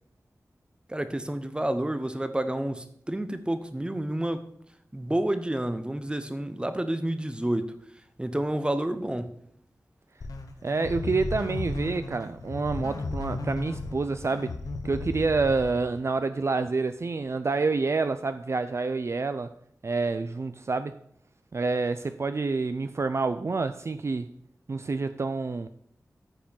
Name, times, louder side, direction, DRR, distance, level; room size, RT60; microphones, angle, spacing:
voice 1, 0.9-4.4 4.9-7.7 8.2-9.3, right 1 dB, 15° right, 1.0 m, -29 dB
sound 1, 10.2-16.0, left 3 dB, 90° left, 1.2 m, -35 dB
voice 2, 10.6-14.5 14.8-19.5 19.8-21.0 21.5-24.3 24.7-25.7, right 3 dB, 50° right, 0.4 m, -28 dB
13.5 x 5.1 x 5.4 m
wide cardioid pair, 70°, 6 cm